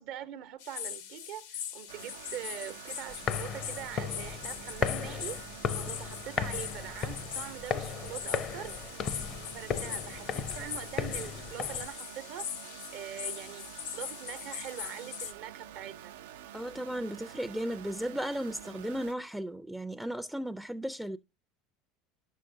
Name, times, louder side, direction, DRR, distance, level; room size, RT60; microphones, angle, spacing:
voice 1, 0.0-5.4 5.7-8.8 9.4-12.5 12.9-16.2, right 11 dB, 70° right, 0.8 m, -43 dB
sound 1, 0.6-15.3, left 9 dB, 85° left, 0.7 m, -41 dB
sound 2, 1.9-19.1, right 11 dB, 85° right, 0.4 m, -48 dB
sound 3, 3.1-11.9, left 7 dB, 50° left, 0.5 m, -36 dB
voice 2, 16.5-21.2, equal, 5° right, 0.4 m, -35 dB
11.0 x 6.4 x 2.6 m
hypercardioid pair, 90°, 0 cm